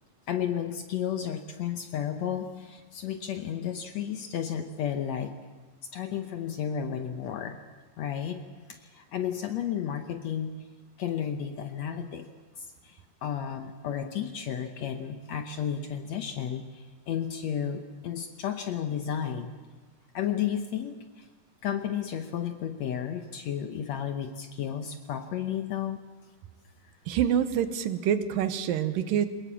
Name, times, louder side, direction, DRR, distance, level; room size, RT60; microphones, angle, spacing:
voice 1, 0.3-5.4 5.9-7.6 8.0-8.4 8.7-10.6 11.0-12.3 12.6-19.5 20.1-21.3 21.6-26.0, left 9 dB, 70° left, 6 dB, 1.8 m, -33 dB
voice 2, 27.1-29.3, right 9 dB, 80° right, 11 dB, 2.7 m, -26 dB
22.5 x 20.5 x 7.4 m, 1.3 s
omnidirectional pair, 4.0 m